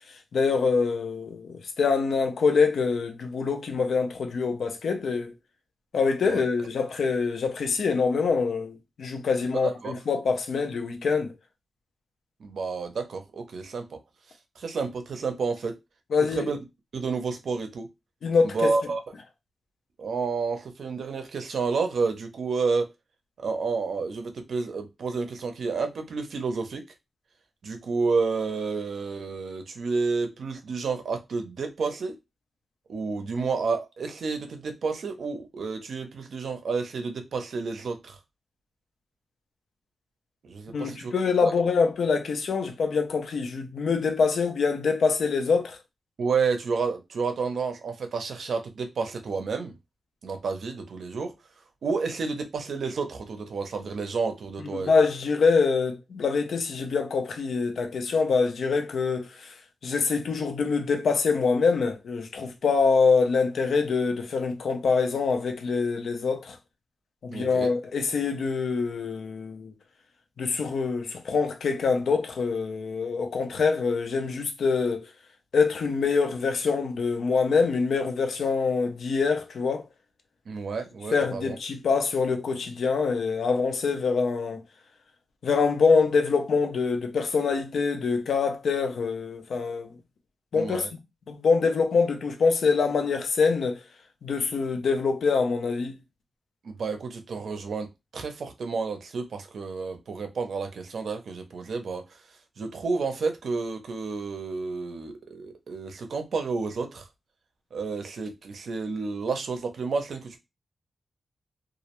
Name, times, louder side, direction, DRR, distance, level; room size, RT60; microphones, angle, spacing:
voice 1, 0.3-5.3 5.9-11.3 16.1-16.5 18.2-18.7 40.7-45.8 54.7-59.5 59.8-66.6 67.2-69.7 70.4-75.1 75.5-79.9 81.1-84.6 85.4-89.9 90.5-90.9 91.3-93.8 94.2-96.0, left 5 dB, 85° left, 0.5 m, -25 dB
voice 2, 12.4-14.0 14.6-15.7 16.3-16.6 16.9-17.9 18.4-19.0 20.0-22.9 23.4-26.8 27.6-32.1 32.9-38.2 40.4-41.1 41.4-41.5 46.2-49.7 50.2-51.3 51.8-54.9 67.3-67.7 80.5-81.6 90.5-90.9 96.6-102.0 102.6-107.0 107.7-110.4, right 4 dB, 80° right, 0.5 m, -30 dB
2.3 x 2.0 x 2.9 m
wide cardioid pair, 85°, 0 cm